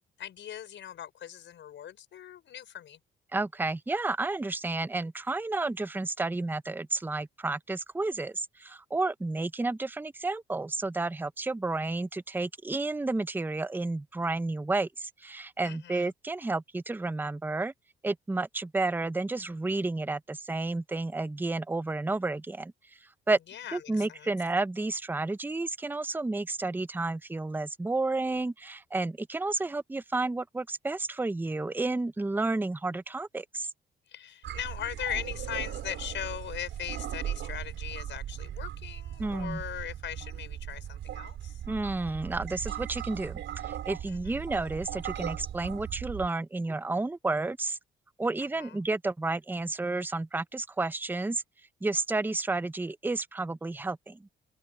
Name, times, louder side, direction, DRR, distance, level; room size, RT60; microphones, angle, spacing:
voice 1, 0.2-3.0 15.6-16.1 23.5-24.4 34.1-41.6 44.1-44.4 48.6-48.8, left 10 dB, 70° left, 5.9 m, -39 dB
voice 2, 3.3-17.7 18.0-22.7 23.3-23.4 23.7-33.7 39.2-39.6 41.7-47.8 48.2-51.4 51.8-54.3, right 2 dB, 10° right, 0.6 m, -31 dB
sound 1, 34.4-46.3, right 10 dB, 70° right, 4.0 m, -38 dB
cardioid pair, 90°, 20 cm